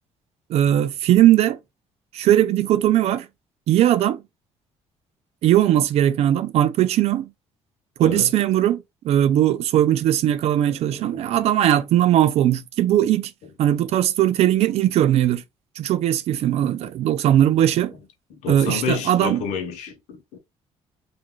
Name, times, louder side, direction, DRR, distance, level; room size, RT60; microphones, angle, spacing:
voice 1, 0.5-1.6 2.1-3.3 3.7-4.2 5.4-7.3 8.0-13.3 13.6-15.4 15.8-17.9 18.5-19.4, right 12 dB, 65° right, 0.4 m, -19 dB
voice 2, 8.0-8.3 10.9-11.3 13.9-14.0 18.3-20.4, left 7 dB, 85° left, 0.8 m, -30 dB
2.4 x 2.2 x 2.9 m
cardioid pair, 125°, 12 cm